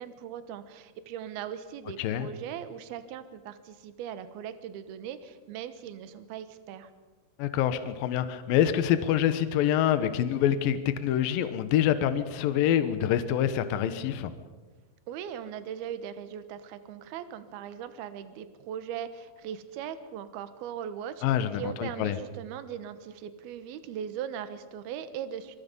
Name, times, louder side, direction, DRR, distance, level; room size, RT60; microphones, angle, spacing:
voice 1, 0.0-6.9 15.1-21.2 21.5-25.6, right 9 dB, 70° right, 11 dB, 2.6 m, -39 dB
voice 2, 7.4-14.3 21.2-22.2, left 10 dB, 90° left, 11 dB, 2.0 m, -26 dB
26.0 x 22.0 x 5.5 m, 1.3 s
omnidirectional pair, 5.7 m